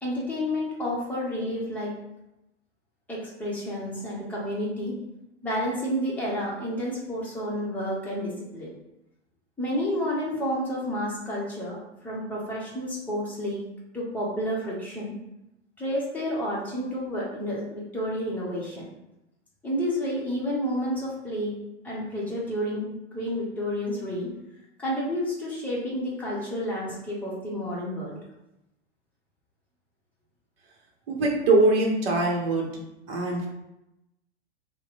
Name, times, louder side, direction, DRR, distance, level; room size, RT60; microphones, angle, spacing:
voice 1, 0.0-1.9 3.1-5.0 5.4-8.7 9.6-13.6 13.9-15.1 15.8-18.9 19.6-21.6 21.8-24.3 24.8-28.2, equal, 5° left, -6 dB, 0.8 m, -30 dB
voice 2, 31.1-32.8 33.1-33.5, right 2 dB, 55° right, 0 dB, 0.9 m, -22 dB
2.8 x 2.1 x 3.9 m, 0.90 s
figure-of-eight pair, 105°, 35 cm